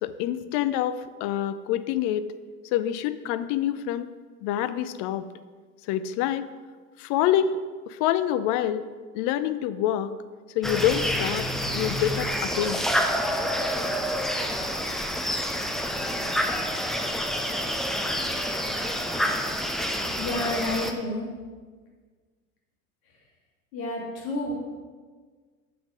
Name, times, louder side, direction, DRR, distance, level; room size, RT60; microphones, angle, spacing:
voice 1, 0.0-2.3 2.6-4.1 4.4-5.3 5.8-6.5 7.0-7.6 7.9-8.9 9.1-10.1 10.5-11.5 11.7-12.9, left 11 dB, 45° left, 13 dB, 0.6 m, -26 dB
sound 1, 10.6-20.9, equal, ahead, 0.5 m, -28 dB
voice 2, 20.2-21.3 23.7-24.5, left 2 dB, 60° left, -2 dB, 2.7 m, -30 dB
7.3 x 6.9 x 4.9 m, 1.5 s
figure-of-eight pair, 80°, 44 cm